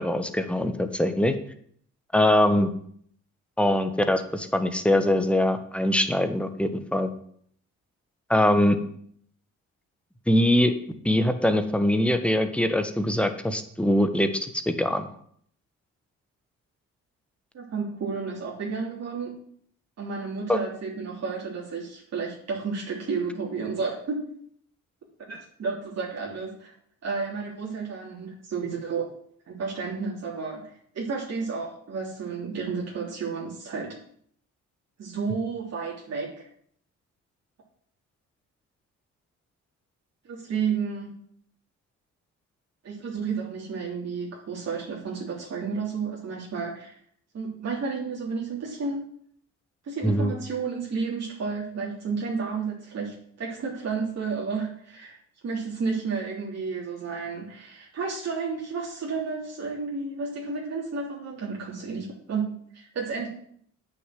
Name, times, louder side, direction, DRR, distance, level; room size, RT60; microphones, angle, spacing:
voice 1, 0.0-1.3 2.1-2.7 3.6-7.1 8.3-8.8 10.3-10.7 11.0-15.1 20.5-20.6 50.0-50.3, left 1 dB, 5° left, 8 dB, 1.4 m, -22 dB
voice 2, 17.5-19.3 20.0-24.2 25.3-26.7 27.0-29.1 29.5-34.0 35.0-36.5 40.3-41.1 42.8-46.9 47.3-49.1 49.8-55.2 55.4-63.3, right 5 dB, 55° right, -4 dB, 3.4 m, -32 dB
9.2 x 6.9 x 7.7 m, 0.63 s
cardioid pair, 90°, 30 cm